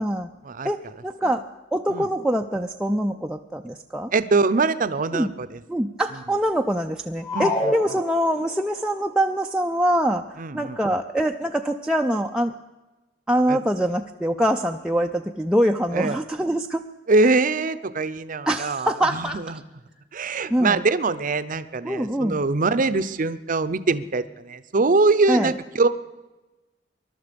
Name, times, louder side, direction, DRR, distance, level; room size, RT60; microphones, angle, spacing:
voice 1, 0.0-0.3 0.6-1.4 1.7-4.1 5.1-5.3 5.7-12.5 13.3-16.8 18.5-19.4 20.5-20.8 21.8-22.4 25.3-25.5, right 1 dB, 5° right, 2 dB, 0.4 m, -24 dB
voice 2, 4.1-5.6 7.3-7.7 10.4-10.8 13.5-13.6 15.9-16.2 17.1-19.6 20.1-25.9, right 3 dB, 45° right, 13 dB, 0.7 m, -23 dB
sound 1, 7.2-8.7, left 2 dB, 20° left, 1.2 m, -28 dB
21.0 x 12.0 x 5.2 m, 1.1 s
head